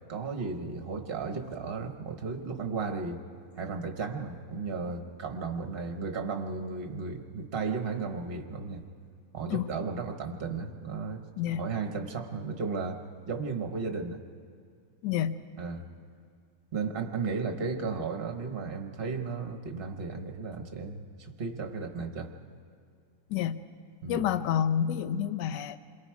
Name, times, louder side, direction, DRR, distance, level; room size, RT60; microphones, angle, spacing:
voice 1, 0.1-3.2 3.6-8.8 9.3-14.2 15.6-15.9 16.7-22.3 24.0-24.2, right 4 dB, 35° right, 5 dB, 1.1 m, -34 dB
voice 2, 15.0-15.4 23.3-23.6 24.1-25.8, left 9 dB, 70° left, 12 dB, 1.3 m, -28 dB
28.0 x 22.5 x 4.7 m, 2.4 s
omnidirectional pair, 2.2 m